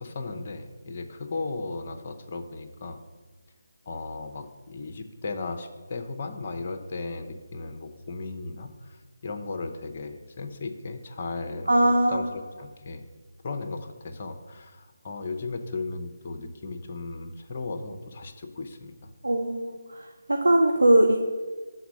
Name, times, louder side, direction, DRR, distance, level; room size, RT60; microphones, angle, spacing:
voice 1, 0.0-3.0 3.9-13.1 13.4-18.9, left 3 dB, 35° left, 6 dB, 0.7 m, -36 dB
voice 2, 11.7-12.3 19.2-21.2, right 1 dB, 70° right, 3 dB, 0.7 m, -21 dB
6.9 x 4.1 x 6.2 m, 1.4 s
figure-of-eight pair, 150°, 0 cm